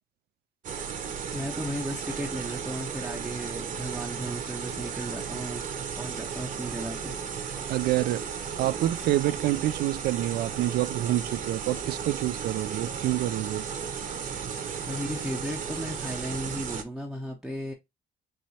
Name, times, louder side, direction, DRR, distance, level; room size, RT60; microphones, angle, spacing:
sound 1, 0.6-16.8, right 7 dB, 50° right, 0.9 m, -35 dB
voice 1, 1.3-5.6 5.9-7.1 14.9-17.7, equal, ahead, 0.7 m, -35 dB
voice 2, 7.7-8.2 8.6-13.7, right 15 dB, 65° right, 0.4 m, -27 dB
4.7 x 3.0 x 2.8 m
cardioid pair, 110°, 17 cm